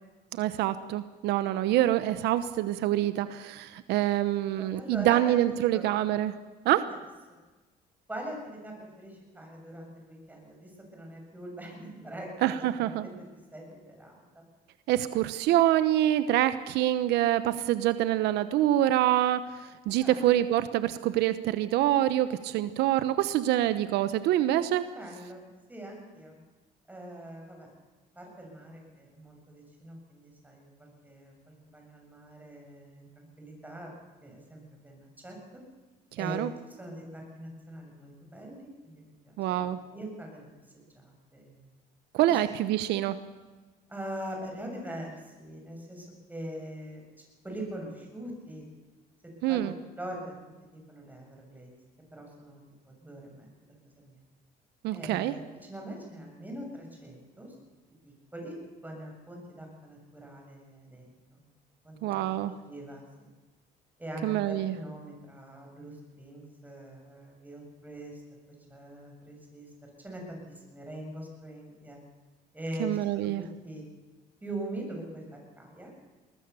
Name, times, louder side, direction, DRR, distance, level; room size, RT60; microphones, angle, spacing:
voice 1, 0.3-6.3 6.6-6.9 12.4-13.1 14.9-24.9 36.2-36.5 39.4-39.8 42.1-43.2 49.4-49.7 54.8-55.4 62.0-62.5 64.2-64.7 72.8-73.4, right 13 dB, 85° right, 12 dB, 0.9 m, -26 dB
voice 2, 4.6-5.3 5.7-5.8 6.8-6.9 8.1-12.5 12.8-13.1 13.5-14.4 20.0-20.4 24.9-26.4 26.9-27.7 28.2-33.9 34.2-35.4 36.2-36.4 36.8-40.5 40.9-41.6 42.3-42.4 43.9-47.0 47.4-48.7 49.5-50.3 50.9-51.7 52.1-53.5 54.0-54.2 54.9-57.5 58.0-58.5 58.8-61.4 61.8-62.2 62.6-63.3 64.0-68.2 68.7-72.0 72.5-72.9 73.6-73.8 74.4-75.9, right 1 dB, 10° right, 1 dB, 7.2 m, -42 dB
21.5 x 20.0 x 7.0 m, 1.3 s
cardioid pair, 110°, 17 cm